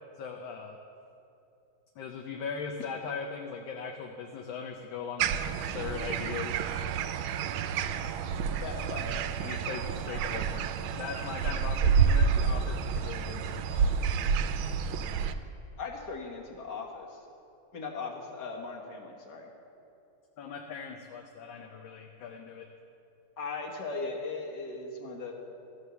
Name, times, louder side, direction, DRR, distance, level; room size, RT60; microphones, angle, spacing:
voice 1, 0.2-0.8 2.0-6.6 8.8-8.9 9.4-14.0 20.4-22.7, left 5 dB, 70° left, 3 dB, 1.4 m, -39 dB
sound 1, 5.2-15.3, right 6 dB, 75° right, 1.3 m, -29 dB
voice 2, 8.6-9.1 15.8-17.3 17.7-19.5 23.4-25.3, left 4 dB, 55° left, 0 dB, 2.0 m, -38 dB
14.0 x 8.1 x 7.0 m, 2.8 s
omnidirectional pair, 2.3 m